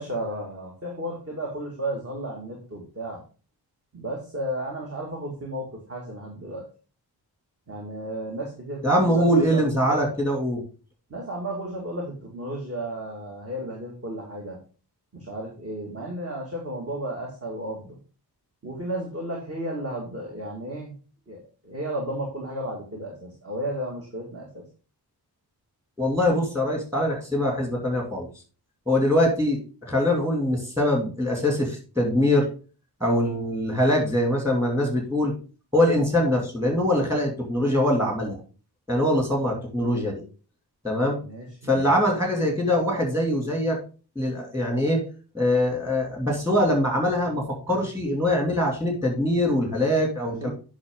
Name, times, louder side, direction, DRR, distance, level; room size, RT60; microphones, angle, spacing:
voice 1, 0.0-3.2 3.9-6.6 7.7-9.6 9.9-10.1 11.1-14.6 15.1-17.9 18.6-20.9 21.3-24.6 41.2-41.9 50.4-50.5, right 1 dB, 35° right, -1 dB, 2.1 m, -33 dB
voice 2, 8.8-10.6 26.0-28.3 28.9-32.5 33.0-35.3 35.7-38.4 38.9-40.2 40.8-41.2 41.6-43.8 44.2-45.0 45.3-50.5, left 1 dB, 5° right, 0 dB, 2.6 m, -23 dB
8.6 x 5.9 x 3.8 m, 0.36 s
wide cardioid pair, 165°, 40 cm